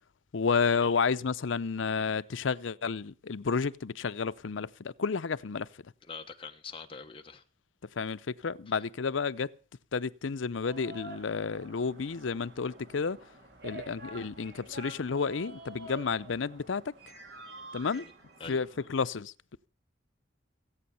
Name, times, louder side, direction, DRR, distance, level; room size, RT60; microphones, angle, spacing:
voice 1, 0.3-5.7 8.0-9.5 9.9-13.2 13.6-16.9 17.7-18.1 18.5-19.3, left 5 dB, 80° left, 0.6 m, -31 dB
voice 2, 6.0-7.4 8.7-8.9 17.9-18.1 18.4-18.6, left 5 dB, 25° left, 1.2 m, -44 dB
sound 1, 10.6-18.9, right 2 dB, 55° right, 3.5 m, -48 dB
17.5 x 8.7 x 6.9 m
head